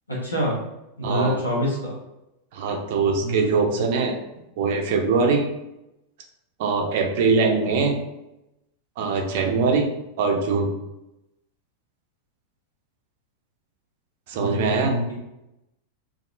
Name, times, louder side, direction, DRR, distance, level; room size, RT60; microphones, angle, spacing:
voice 1, 0.1-0.6 1.0-1.9 3.2-3.6 14.4-15.1, equal, 80° left, -6 dB, 0.9 m, -26 dB
voice 2, 1.0-1.4 2.5-4.1 4.6-5.4 6.6-8.0 9.0-9.9 10.2-10.7 14.3-15.0, right 4 dB, 50° right, 2 dB, 0.5 m, -22 dB
2.8 x 2.5 x 2.5 m, 0.91 s
figure-of-eight pair, 90°, 0 cm